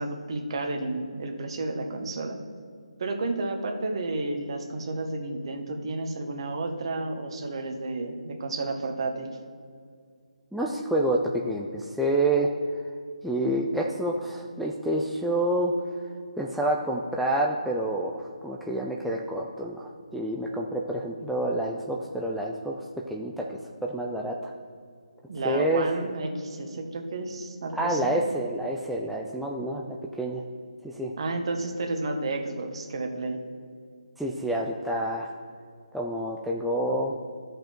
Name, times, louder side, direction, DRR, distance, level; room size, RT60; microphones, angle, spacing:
voice 1, 0.0-2.4 3.0-9.3 25.3-28.1 31.2-33.4, right 2 dB, 45° right, 4 dB, 1.3 m, -31 dB
voice 2, 10.5-12.5 13.2-15.7 16.4-22.8 23.1-24.5 25.4-25.9 27.7-30.4 30.8-31.1 34.2-35.3 35.9-37.2, right 1 dB, ahead, -3 dB, 0.3 m, -28 dB
12.0 x 5.2 x 4.5 m, 2.2 s
figure-of-eight pair, 160°, 4 cm